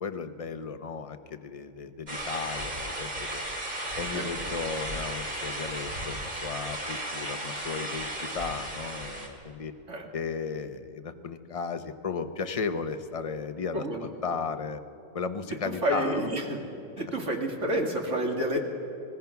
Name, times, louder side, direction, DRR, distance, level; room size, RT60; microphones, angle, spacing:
voice 1, 0.0-3.4 4.0-9.7 10.1-14.8 15.1-16.3, left 5 dB, 30° left, 9 dB, 0.8 m, -35 dB
sound 1, 2.1-9.3, right 1 dB, 30° right, 2.7 m, -35 dB
voice 2, 13.7-14.1 15.7-16.6 17.0-18.6, right 1 dB, 55° right, 1 dB, 2.7 m, -29 dB
25.0 x 19.5 x 5.9 m, 2.7 s
omnidirectional pair, 1.5 m